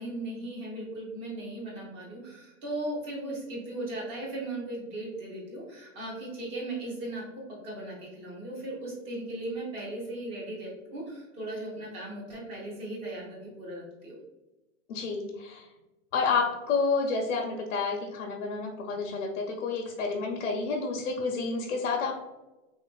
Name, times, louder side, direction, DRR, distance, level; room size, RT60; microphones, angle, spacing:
voice 1, 0.0-7.2 7.6-14.1, right 1 dB, 15° right, -4 dB, 0.5 m, -37 dB
voice 2, 14.9-15.6 16.1-22.2, left 4 dB, 85° left, 1 dB, 0.6 m, -29 dB
3.5 x 2.5 x 2.2 m, 1.0 s
supercardioid pair, 165°, 38 cm